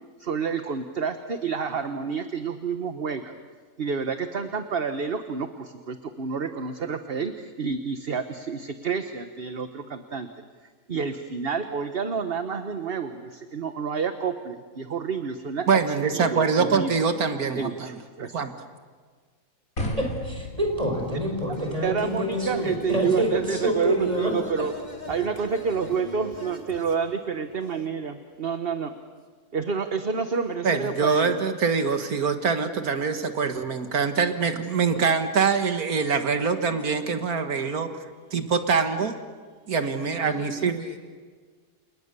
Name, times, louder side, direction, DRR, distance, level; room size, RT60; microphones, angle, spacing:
voice 1, 0.2-3.3 3.8-10.3 10.9-15.7 16.1-16.9 17.5-18.4 21.8-24.7 25.1-28.9 29.5-31.4, right 5 dB, 45° right, 1.3 m, -29 dB
voice 2, 15.7-18.0 18.3-18.5 30.6-37.9 38.3-39.2 39.7-40.8, right 5 dB, 80° right, 2.0 m, -24 dB
sound 1, 19.8-25.9, equal, 70° left, 4.2 m, -39 dB
voice 3, 20.0-24.3 34.9-35.0, right 1 dB, 25° right, 5.6 m, -27 dB
voice 4, 21.2-21.9 22.3-27.1 39.8-41.0, equal, 30° left, 2.6 m, -42 dB
30.0 x 29.0 x 6.8 m
omnidirectional pair, 1.5 m